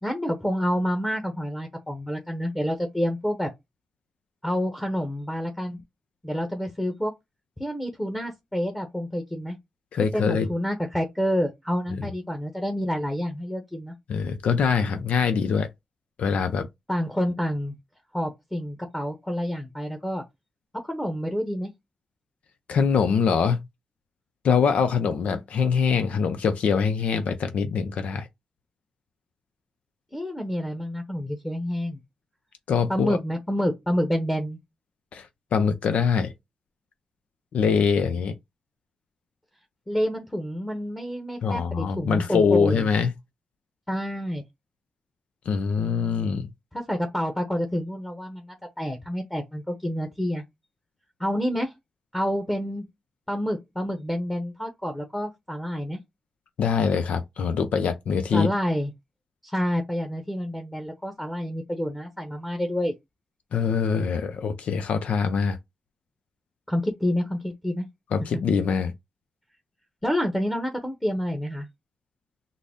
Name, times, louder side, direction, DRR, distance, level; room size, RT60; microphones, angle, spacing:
voice 1, 0.0-3.5 4.4-5.8 6.2-7.1 7.6-9.6 10.1-13.9 16.9-17.7 18.1-20.2 20.8-21.7 30.1-32.0 32.9-34.6 39.9-42.9 43.9-44.4 46.7-50.4 51.2-51.7 52.1-52.9 53.3-56.0 58.3-58.9 59.4-62.9 66.7-67.9 70.0-71.7, equal, 10° left, 0.9 m, -28 dB
voice 2, 9.9-10.5 14.1-15.7 16.2-16.7 22.7-23.7 24.4-28.3 32.7-33.2 35.1-36.3 37.5-38.4 41.4-43.1 45.5-46.5 56.6-58.5 63.5-65.6 68.1-68.9, left 6 dB, 85° left, 0.5 m, -23 dB
3.8 x 2.1 x 3.5 m
cardioid pair, 75°, 2 cm